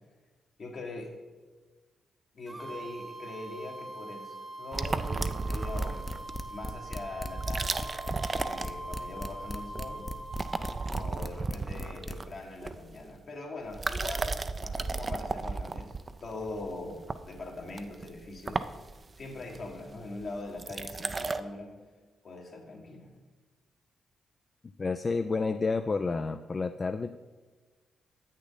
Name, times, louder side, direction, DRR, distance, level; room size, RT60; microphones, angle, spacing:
voice 1, 0.6-1.1 2.3-6.1 6.5-7.9 8.3-10.0 10.9-16.0 16.2-18.6 19.2-21.8 22.2-23.1, left 2 dB, 60° left, 0 dB, 1.7 m, -42 dB
sound 1, 2.5-11.1, right 2 dB, 25° right, 1.0 m, -43 dB
sound 2, 4.7-6.5 7.3-9.2 9.5-9.9 10.2-13.2 13.7-21.4, right 3 dB, 40° right, 0.4 m, -34 dB
sound 3, 5.2-12.1, left 1 dB, 20° left, 0.7 m, -37 dB
voice 2, 24.8-27.2, left 4 dB, 45° left, 9 dB, 0.3 m, -30 dB
8.0 x 6.4 x 4.0 m, 1.3 s
supercardioid pair, 50°, 0 cm